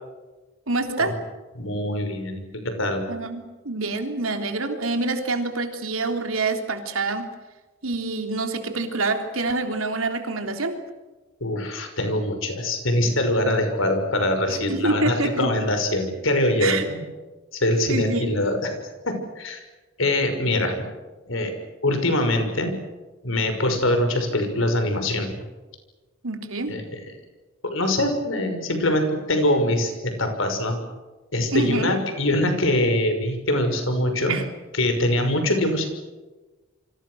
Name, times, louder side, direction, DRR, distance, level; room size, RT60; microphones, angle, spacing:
voice 1, 0.7-1.2 3.1-7.3 7.8-10.8 14.5-15.6 16.6-16.9 17.9-18.4 26.2-26.9 31.5-32.0 34.3-34.4, right 3 dB, 85° right, 5 dB, 3.5 m, -26 dB
voice 2, 1.6-3.0 11.4-17.0 17.5-18.7 19.1-19.6 20.0-20.9 21.3-21.5 21.8-22.7 23.2-25.4 26.7-27.0 27.7-30.8 31.3-34.4 34.8-35.9, left 1 dB, 70° left, 6 dB, 6.0 m, -23 dB
29.0 x 25.0 x 6.5 m, 1.2 s
head